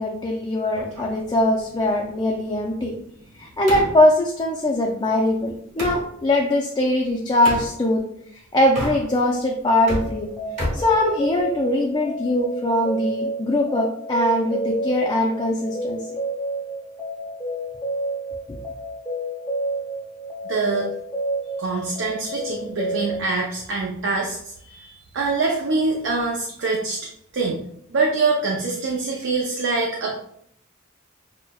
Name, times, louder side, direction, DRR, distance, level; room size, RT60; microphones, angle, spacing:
voice 1, 0.0-3.0 3.4-8.0 8.3-10.3 10.7-16.0, left 1 dB, 20° left, -1 dB, 0.4 m, -21 dB
sound 1, 0.8-6.1 7.4-7.7 8.6-9.4 9.7-11.7, equal, 35° right, 1.5 m, -32 dB
sound 2, 9.9-23.2, right 1 dB, 5° left, 0.7 m, -30 dB
voice 2, 20.4-20.9 21.6-24.4 24.6-27.0 27.3-27.6 27.9-30.2, right 3 dB, 65° right, -1 dB, 0.5 m, -24 dB
6.1 x 2.1 x 2.2 m, 0.70 s
head